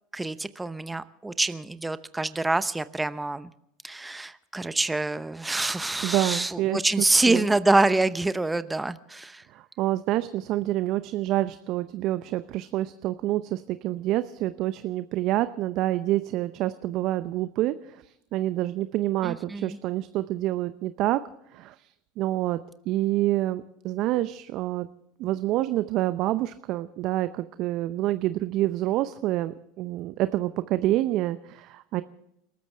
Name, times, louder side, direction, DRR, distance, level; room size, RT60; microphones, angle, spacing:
voice 1, 0.1-3.5 3.8-9.4 19.2-19.8, right 2 dB, 10° right, 13 dB, 0.8 m, -26 dB
voice 2, 6.0-7.5 9.5-21.2 21.5-22.6 22.9-24.9 25.2-32.0, right 15 dB, 55° right, 13 dB, 0.7 m, -27 dB
30.0 x 14.0 x 3.4 m, 0.79 s
hypercardioid pair, 85°, 0 cm